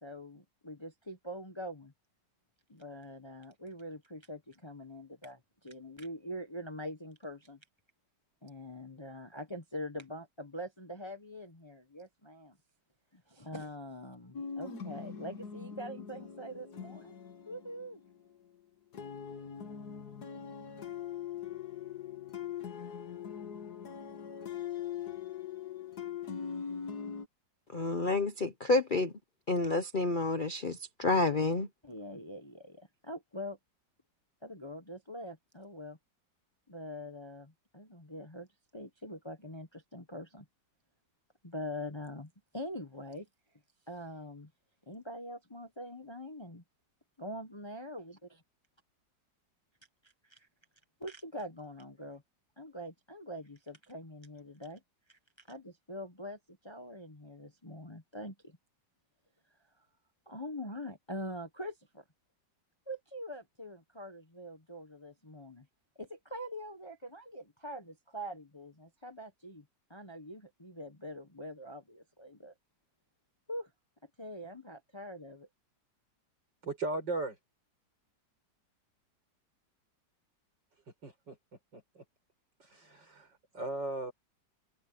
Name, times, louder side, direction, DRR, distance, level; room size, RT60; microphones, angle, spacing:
voice 1, 0.0-1.9 2.7-7.6 8.4-12.6 13.1-17.1 17.5-18.0 31.8-33.6 34.4-36.0 36.7-38.5 38.7-40.5 41.4-43.3 43.9-44.5 44.9-46.6 47.2-48.2 50.3-50.5 51.0-52.2 52.6-54.8 55.1-58.6 60.3-62.0 62.9-65.7 66.0-72.5 73.5-73.7 74.2-75.5, equal, 15° left, 1.2 m, -44 dB
sound 1, 14.3-18.4 18.9-27.3, left 8 dB, 60° left, 2.0 m, -42 dB
voice 2, 27.7-29.1 29.5-31.7, left 2 dB, 40° left, 0.7 m, -29 dB
voice 3, 76.6-77.4 81.0-81.3 81.7-82.0 82.6-84.1, right 2 dB, 75° right, 6.7 m, -37 dB
omnidirectional pair, 2.0 m